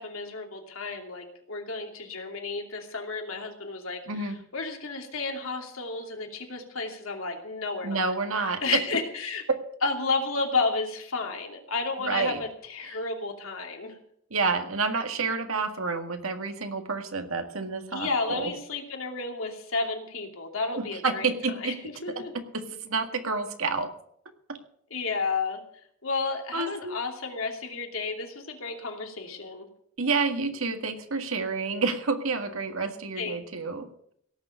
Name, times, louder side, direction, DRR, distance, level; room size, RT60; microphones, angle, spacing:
voice 1, 0.0-8.1 8.4-9.4 9.8-14.0 17.9-21.3 21.6-21.7 22.0-22.3 24.9-25.6 26.0-29.7 33.2-33.4, left 4 dB, 80° left, 2 dB, 2.7 m, -32 dB
voice 2, 4.1-4.4 7.8-8.8 12.0-12.4 12.8-13.0 14.3-18.5 20.7-21.7 22.2-23.9 26.5-27.0 30.0-34.1, right 4 dB, 85° right, 6 dB, 1.8 m, -29 dB
17.5 x 6.8 x 8.3 m, 0.69 s
head